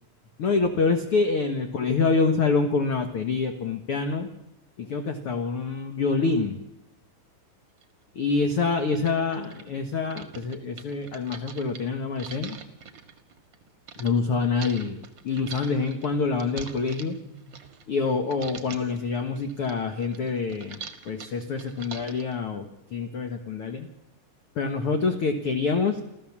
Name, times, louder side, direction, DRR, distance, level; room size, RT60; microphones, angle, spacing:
voice 1, 0.4-4.3 4.8-6.6 8.1-12.6 14.0-17.6 17.9-20.8 21.1-23.9 24.6-26.0, left 4 dB, 55° left, 6 dB, 1.7 m, -26 dB
sound 1, 7.8-7.9 8.5-8.6 8.9-14.1 14.6-18.0 18.3-19.0 19.4-22.4, right 6 dB, 45° right, 1.7 m, -43 dB
28.5 x 14.0 x 7.3 m, 0.92 s
omnidirectional pair, 4.1 m